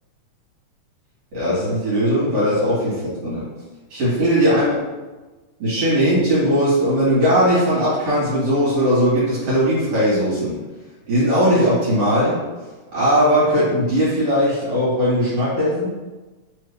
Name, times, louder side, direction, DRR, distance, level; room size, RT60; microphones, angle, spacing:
voice 1, 1.3-3.4 3.9-4.8 5.6-10.6 11.1-12.4 12.9-15.9, equal, 55° right, -11 dB, 2.4 m, -19 dB
4.7 x 2.8 x 3.4 m, 1.2 s
omnidirectional pair, 3.4 m